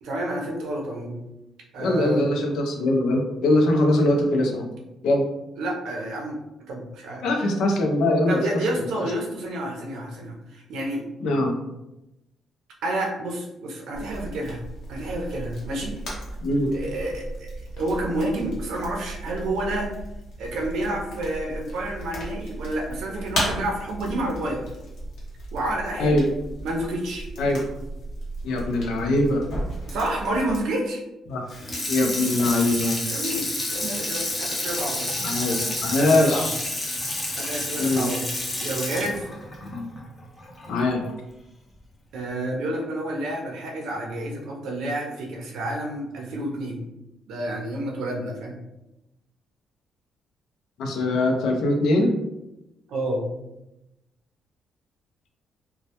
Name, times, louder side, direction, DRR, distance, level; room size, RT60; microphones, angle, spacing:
voice 1, 0.0-1.2 1.7-2.3 5.6-7.3 8.3-11.1 12.8-14.6 14.9-16.0 16.7-19.9 20.4-24.6 25.5-26.2 26.6-27.3 29.9-31.0 33.1-35.1 36.0-36.5 37.4-38.3 38.6-39.2 42.1-46.8 47.3-48.6 52.9-53.3, right 1 dB, 80° right, 0 dB, 0.5 m, -29 dB
voice 2, 1.8-4.6 5.0-5.2 7.2-8.4 8.7-8.9 11.2-11.6 16.4-16.7 26.0-26.3 27.4-27.6 28.4-29.4 31.3-31.4 31.9-32.9 35.2-36.6 37.8-38.1 39.6-39.8 40.7-41.0 50.8-52.1, left 1 dB, 90° left, 2 dB, 0.4 m, -22 dB
sound 1, 13.9-30.6, right 1 dB, 65° left, 0.8 m, -35 dB
Water tap faucet / Sink (filling or washing), 31.5-40.7 41.1-41.2, left 1 dB, 20° left, 0.6 m, -29 dB
2.1 x 2.1 x 2.8 m, 0.93 s
cardioid pair, 155°, 0 cm